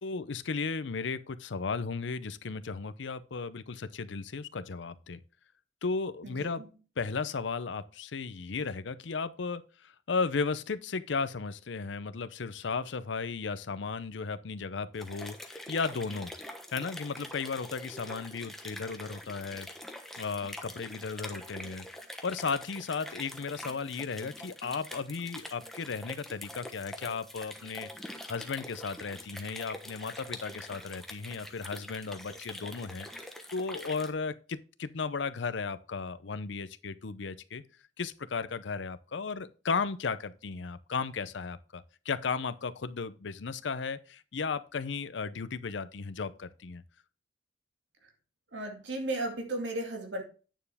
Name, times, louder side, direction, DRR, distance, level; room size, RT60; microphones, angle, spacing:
voice 1, 0.0-5.2 5.8-6.6 7.0-16.3 16.7-19.7 20.2-21.9 22.2-33.1 33.5-37.6 38.0-46.8, left 4 dB, 75° left, 0.6 m, -35 dB
voice 2, 6.2-6.7 48.5-50.2, right 2 dB, 75° right, 2.3 m, -35 dB
sound 1, 14.9-34.1, left 1 dB, ahead, 1.1 m, -45 dB
9.1 x 6.8 x 3.5 m
head